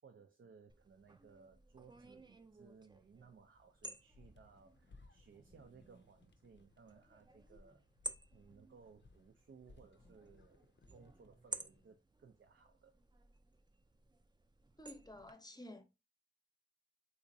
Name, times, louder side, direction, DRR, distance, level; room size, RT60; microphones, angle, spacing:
voice 1, 0.0-7.8 8.3-13.0, right 5 dB, 90° right, 0.4 m, -62 dB
sound 1, 0.7-15.3, right 2 dB, 25° right, 0.4 m, -54 dB
sound 2, 4.1-11.9, left 3 dB, 75° left, 0.5 m, -65 dB
voice 2, 14.8-15.8, left 1 dB, 20° left, 0.6 m, -52 dB
3.6 x 3.0 x 2.6 m
wide cardioid pair, 60°, 19 cm